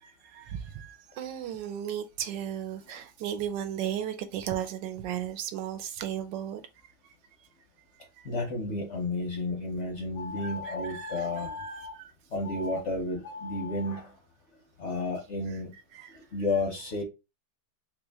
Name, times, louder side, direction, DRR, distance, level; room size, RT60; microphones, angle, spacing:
voice 1, 0.0-6.6 10.4-11.3 11.6-12.1 15.9-16.2, right 10 dB, 75° right, 1.2 m, -35 dB
voice 2, 8.2-11.6 12.3-14.1 14.8-15.7 16.1-17.0, left 2 dB, 55° left, 0.8 m, -32 dB
sound 1, 10.1-12.0 12.4-12.8 13.2-14.0, left 2 dB, 20° left, 0.6 m, -40 dB
3.2 x 3.1 x 3.4 m
omnidirectional pair, 2.0 m